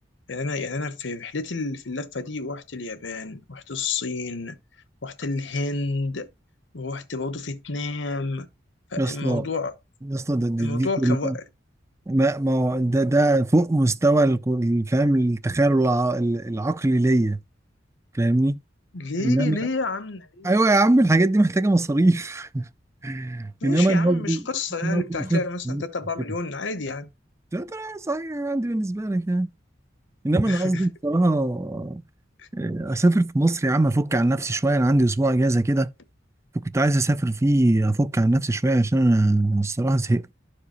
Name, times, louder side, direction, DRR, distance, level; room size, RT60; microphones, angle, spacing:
voice 1, 0.3-4.6 5.0-6.3 6.7-8.5 8.9-9.8 10.6-11.4 18.9-20.6 23.6-27.1 30.5-30.8 32.4-32.5, left 3 dB, 70° left, 1.0 m, -30 dB
voice 2, 9.0-9.5 10.0-11.3 12.1-17.4 18.1-18.6 19.2-19.6 20.4-22.7 23.0-24.4 24.8-25.8 27.5-29.5 30.2-32.0 32.5-35.9 36.5-40.3, right 2 dB, 15° right, 0.4 m, -21 dB
12.0 x 4.8 x 3.0 m
head